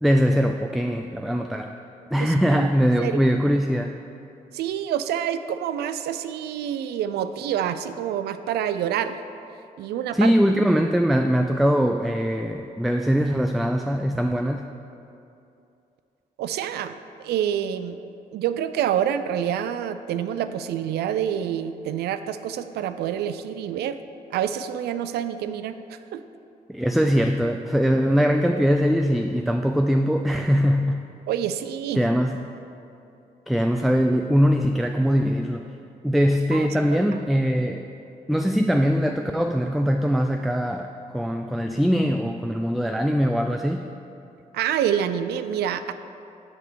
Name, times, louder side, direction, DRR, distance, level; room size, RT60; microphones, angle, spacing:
voice 1, 0.0-1.8 2.1-4.0 10.1-14.7 26.7-31.1 32.0-32.4 33.5-35.7 36.0-37.8 38.3-43.9, equal, ahead, 5 dB, 0.4 m, -22 dB
voice 2, 2.2-2.7 3.0-3.2 4.5-9.2 9.8-10.3 16.4-18.0 18.3-24.0 24.3-26.2 31.3-32.0 36.5-37.0 44.5-45.9, right 9 dB, 80° right, 11 dB, 0.4 m, -27 dB
9.6 x 5.0 x 4.6 m, 2.6 s
supercardioid pair, 50°, 17 cm